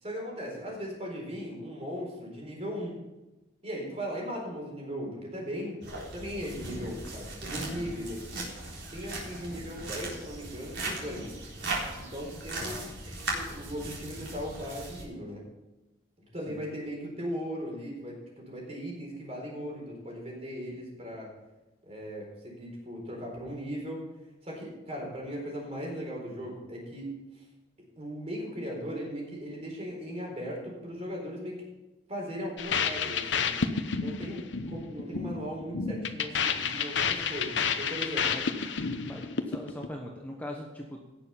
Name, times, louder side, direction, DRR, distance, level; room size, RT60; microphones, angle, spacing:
voice 1, 0.0-3.0 3.6-5.8 6.1-11.3 11.9-12.8 13.0-15.4 16.3-21.3 21.8-24.0 24.4-27.1 27.3-27.4 28.0-31.6 32.1-33.7 34.0-38.4, equal, 30° right, -1 dB, 4.1 m, -38 dB
sound 1, 5.8-15.0, right 2 dB, 70° right, 3.9 m, -38 dB
voice 2, 12.6-13.0 16.5-16.6 38.3-38.4 39.0-41.1, left 1 dB, 10° left, 0 dB, 1.0 m, -41 dB
sound 2, 32.6-39.9, left 6 dB, 70° left, 0.9 m, -30 dB
17.0 x 6.9 x 5.7 m, 1.0 s
head